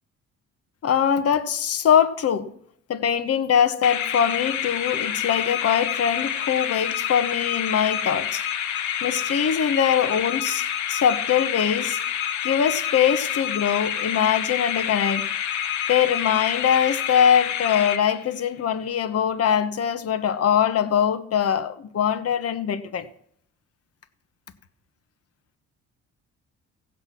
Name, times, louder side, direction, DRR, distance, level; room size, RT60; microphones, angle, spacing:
voice 1, 0.8-2.5 2.9-8.4 9.0-12.0 12.4-15.3 15.9-23.1, left 8 dB, 55° left, 1.1 m, -22 dB
sound 1, 3.8-18.5, left 9 dB, 75° left, 1.0 m, -28 dB
16.0 x 7.7 x 6.1 m
cardioid pair, 90°, 30 cm